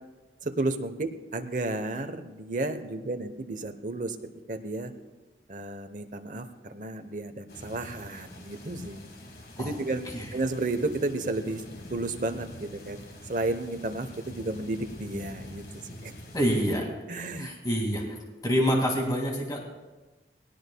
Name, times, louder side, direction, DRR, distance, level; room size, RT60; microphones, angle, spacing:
voice 1, 0.4-4.2 4.5-4.9 5.5-9.1 9.6-10.0 10.3-11.6 11.9-13.0 13.3-16.1 17.1-17.5, right 2 dB, 45° right, 8 dB, 0.9 m, -32 dB
sound 1, 7.5-16.8, left 1 dB, 60° left, 1.8 m, -45 dB
voice 2, 16.3-16.9 17.1-18.2 18.4-19.6, equal, 20° left, -1 dB, 2.1 m, -27 dB
20.5 x 17.5 x 2.3 m, 1.2 s
head